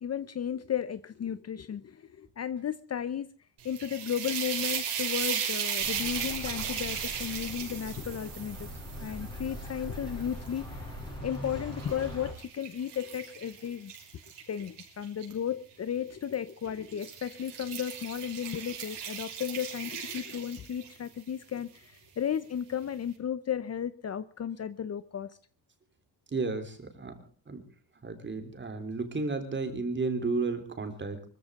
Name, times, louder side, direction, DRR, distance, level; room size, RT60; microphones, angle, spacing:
voice 1, 0.0-3.3 3.6-8.7 9.0-13.9 14.5-25.3, left 9 dB, 40° left, 15 dB, 0.7 m, -34 dB
sound 1, 3.6-10.8 11.3-15.3 16.2-16.5 16.9-21.1, right 7 dB, 75° right, 6.2 m, -37 dB
Bird, 5.8-12.3, equal, 10° left, 4.8 m, -41 dB
voice 2, 26.3-27.2 27.5-27.6 28.0-31.2, right 3 dB, 25° right, 6 dB, 3.5 m, -33 dB
24.5 x 15.0 x 3.7 m, 0.40 s
wide cardioid pair, 165°, 41 cm